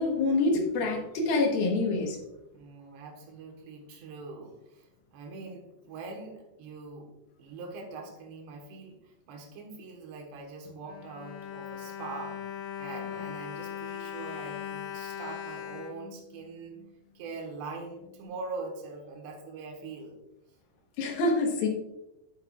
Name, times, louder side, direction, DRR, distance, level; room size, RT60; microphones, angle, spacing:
voice 1, 0.0-2.2 21.0-21.7, left 3 dB, 70° left, 1 dB, 2.9 m, -26 dB
voice 2, 2.5-7.1 7.4-12.4 12.8-16.8 17.2-20.2, right 3 dB, 85° right, 1 dB, 3.5 m, -43 dB
Bowed string instrument, 10.6-16.9 17.6-17.7 18.0-18.1, left 9 dB, 85° left, 1.8 m, -40 dB
9.7 x 7.8 x 2.4 m, 0.92 s
omnidirectional pair, 4.8 m